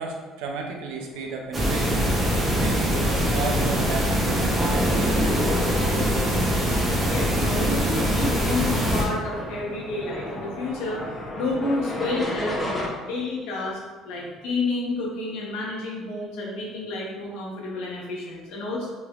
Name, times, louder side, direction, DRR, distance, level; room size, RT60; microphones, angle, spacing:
voice 1, 0.0-2.1 2.6-5.3 14.2-14.3, right 4 dB, 80° right, 2 dB, 0.5 m, -33 dB
sound 1, 1.2-12.9, left 1 dB, 15° left, 0.6 m, -36 dB
sound 2, 1.5-9.0, equal, 20° right, 0.7 m, -23 dB
Guitar, 4.8-8.2, left 1 dB, 55° left, 1.3 m, -35 dB
voice 2, 7.1-11.0 11.4-18.9, left 2 dB, 80° left, -3 dB, 0.8 m, -30 dB
3.2 x 2.7 x 2.4 m, 1.3 s
supercardioid pair, 95°, 0 cm